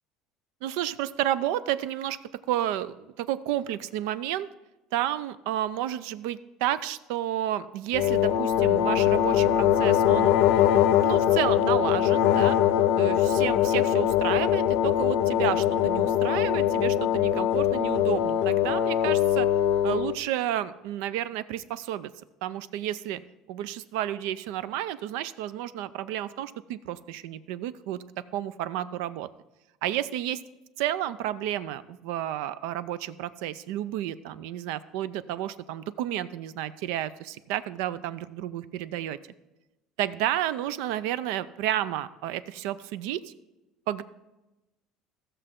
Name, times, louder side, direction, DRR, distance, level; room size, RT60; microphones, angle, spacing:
voice 1, 0.6-2.2 2.5-4.5 4.9-10.3 11.0-12.6 13.0-19.5 19.8-22.1 22.4-23.2 23.5-28.0 28.3-29.3 29.8-30.4 30.8-39.2 40.0-43.3 43.9-44.0, right 12 dB, 80° right, 16 dB, 0.5 m, -31 dB
sound 1, 7.9-20.2, left 10 dB, 65° left, 0.4 m, -22 dB
15.5 x 6.7 x 3.7 m, 1.0 s
cardioid pair, 130°, 0 cm